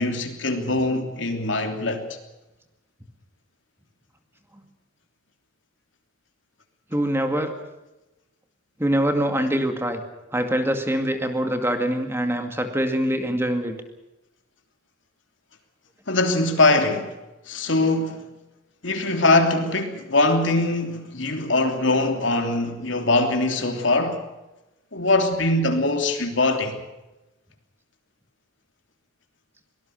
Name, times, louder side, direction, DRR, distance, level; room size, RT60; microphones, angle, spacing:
voice 1, 0.0-2.0 16.1-17.1 17.5-18.2 18.8-24.2 24.9-26.8, left 2 dB, 70° left, 3.1 m, -22 dB
voice 2, 6.9-7.5 8.8-10.0 10.3-13.8, right 1 dB, 10° right, 2.2 m, -24 dB
24.0 x 19.0 x 6.6 m
head